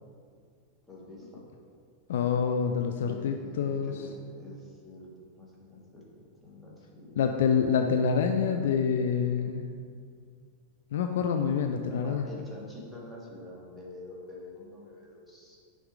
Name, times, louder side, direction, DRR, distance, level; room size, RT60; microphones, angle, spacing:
voice 1, 0.9-1.4 3.0-6.0 6.4-7.6 11.7-15.6, left 2 dB, 5° left, -5 dB, 1.5 m, -46 dB
voice 2, 2.1-3.9 7.2-9.7 10.9-12.2, left 6 dB, 60° left, 5 dB, 0.3 m, -27 dB
6.0 x 3.6 x 4.8 m, 2.2 s
figure-of-eight pair, 90°, 0 cm